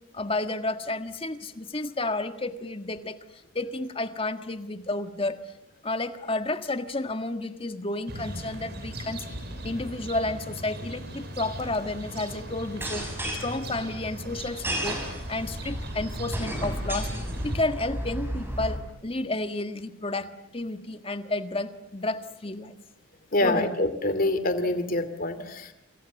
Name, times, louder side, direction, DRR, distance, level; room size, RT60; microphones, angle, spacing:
voice 1, 0.1-3.2 3.5-5.4 5.8-9.2 9.6-13.1 13.4-15.0 15.3-17.1 17.4-22.8 23.4-23.7, left 2 dB, 25° left, 9 dB, 1.7 m, -31 dB
sound 1, 8.1-17.6, right 1 dB, 55° right, 6.7 m, -38 dB
sound 2, 12.7-18.8, equal, 10° right, 6.8 m, -34 dB
voice 2, 23.3-25.7, left 2 dB, 45° left, 11 dB, 2.6 m, -26 dB
28.0 x 28.0 x 7.2 m, 0.78 s
head